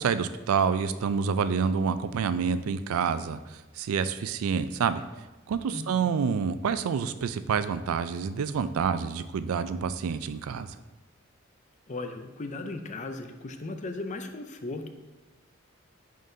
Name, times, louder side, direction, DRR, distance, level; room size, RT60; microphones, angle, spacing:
voice 1, 0.0-5.0 5.5-10.7, right 6 dB, 85° right, 12 dB, 0.4 m, -28 dB
voice 2, 5.7-6.1 11.9-14.9, left 2 dB, 35° left, 6 dB, 0.5 m, -37 dB
10.0 x 3.8 x 2.7 m, 1.2 s
head